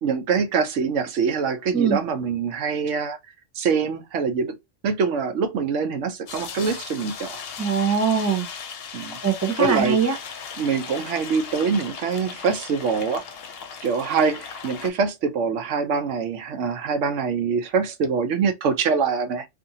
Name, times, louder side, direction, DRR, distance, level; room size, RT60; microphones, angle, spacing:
voice 1, 0.0-3.2 3.6-4.6 4.8-7.4 8.9-9.2 9.6-10.0 10.6-13.2 13.8-19.5, right 5 dB, 85° right, 1.0 m, -24 dB
sound 1, 6.3-14.9, left 6 dB, 65° left, 0.8 m, -37 dB
voice 2, 7.6-8.5 9.2-10.2, right 6 dB, 25° right, 0.4 m, -21 dB
2.6 x 2.5 x 2.6 m
omnidirectional pair, 1.2 m